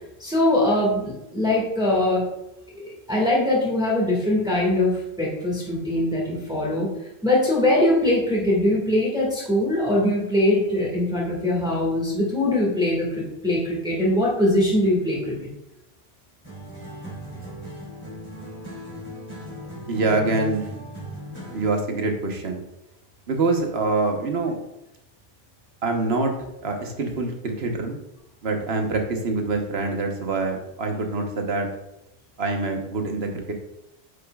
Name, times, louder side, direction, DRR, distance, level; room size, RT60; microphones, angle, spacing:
voice 1, 0.2-2.2 2.7-4.9 5.2-6.9 7.2-15.3, left 1 dB, 5° right, -4 dB, 1.8 m, -22 dB
sound 1, 16.4-21.8, equal, 25° right, 2.7 m, -37 dB
voice 2, 19.9-20.7 21.5-22.6 23.3-24.6 25.8-26.3 26.6-28.0 28.4-31.7 32.4-33.5, right 3 dB, 70° right, 4 dB, 1.3 m, -25 dB
9.1 x 6.9 x 2.3 m, 0.88 s
omnidirectional pair, 1.1 m